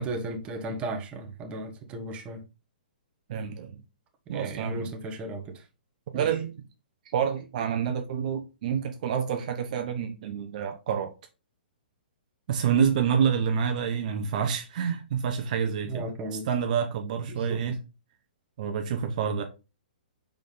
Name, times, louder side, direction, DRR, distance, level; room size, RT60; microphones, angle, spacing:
voice 1, 0.0-2.4 4.3-5.6 6.1-6.3 12.7-12.9 15.9-16.5 17.3-17.6, right 2 dB, 25° right, 1.3 m, -35 dB
voice 2, 3.3-3.8 4.3-4.8 6.1-6.5 7.1-11.1 12.5-16.0 16.5-17.8 18.6-19.4, right 7 dB, 55° right, 1.0 m, -28 dB
5.1 x 5.1 x 3.9 m
hypercardioid pair, 140°, 5 cm